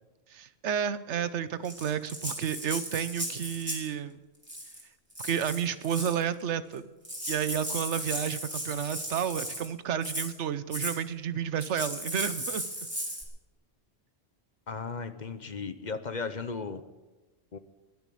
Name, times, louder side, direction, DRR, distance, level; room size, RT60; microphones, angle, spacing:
voice 1, 0.3-4.2 5.2-6.8 7.3-12.6, right 8 dB, 85° right, 14 dB, 1.1 m, -31 dB
Rattle (instrument), 1.6-3.9 4.4-4.8 5.1-6.2 6.8-6.9 7.0-9.7 10.0-10.3 10.7-11.0 11.6-13.2, equal, 10° right, 3.1 m, -36 dB
voice 2, 14.7-16.8 17.5-17.6, left 4 dB, 45° left, 11 dB, 0.9 m, -36 dB
21.0 x 7.3 x 8.5 m, 1.2 s
omnidirectional pair, 1.1 m